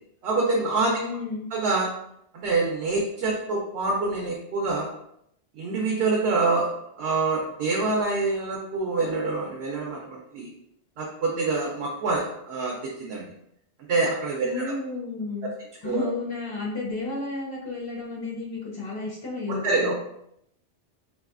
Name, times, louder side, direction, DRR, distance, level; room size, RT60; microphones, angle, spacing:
voice 1, 0.2-1.0 1.5-1.9 2.3-4.9 5.5-6.7 7.0-10.5 11.0-13.3 13.9-14.7 15.8-16.1 19.5-19.9, right 3 dB, 70° right, -2 dB, 0.8 m, -26 dB
voice 2, 1.0-1.5 14.4-15.5 15.8-19.9, left 3 dB, 35° left, -5 dB, 0.4 m, -32 dB
3.1 x 2.6 x 2.4 m, 0.75 s
omnidirectional pair, 1.2 m